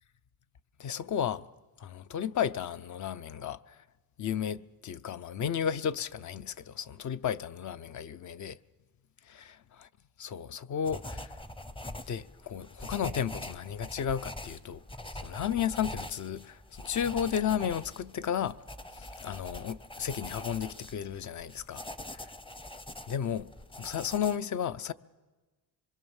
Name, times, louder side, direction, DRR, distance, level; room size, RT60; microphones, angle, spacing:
voice 1, 0.8-1.5 1.8-3.8 4.2-8.6 9.4-9.9 10.2-11.4 12.1-14.8 15.1-18.6 18.9-21.9 23.1-23.5 23.8-24.9, left 8 dB, 55° left, 0.7 m, -33 dB
sound 1, 10.8-24.4, left 1 dB, 15° left, 0.8 m, -43 dB
25.5 x 22.0 x 7.2 m
cardioid pair, 160°, 36 cm